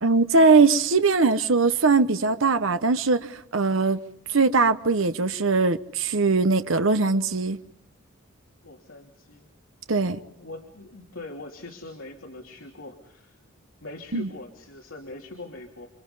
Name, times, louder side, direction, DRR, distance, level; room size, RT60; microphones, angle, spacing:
voice 1, 0.0-4.0 4.3-7.6 9.9-10.2 14.1-14.3, right 4 dB, 70° right, 1.0 m, -21 dB
voice 2, 8.6-9.5 9.9-13.4 13.8-15.9, left 2 dB, 75° left, 2.9 m, -42 dB
29.0 x 26.0 x 5.5 m
head